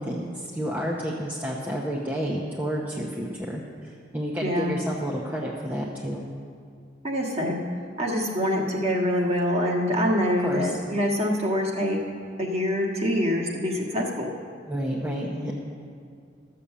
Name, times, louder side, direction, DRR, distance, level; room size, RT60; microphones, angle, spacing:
voice 1, 0.0-6.3 10.4-10.8 14.7-15.5, equal, 10° right, -3 dB, 0.8 m, -30 dB
voice 2, 4.4-4.7 7.0-7.6 8.0-12.0 12.4-14.3, equal, 35° right, -1 dB, 1.5 m, -25 dB
12.5 x 6.9 x 7.4 m, 2.4 s
head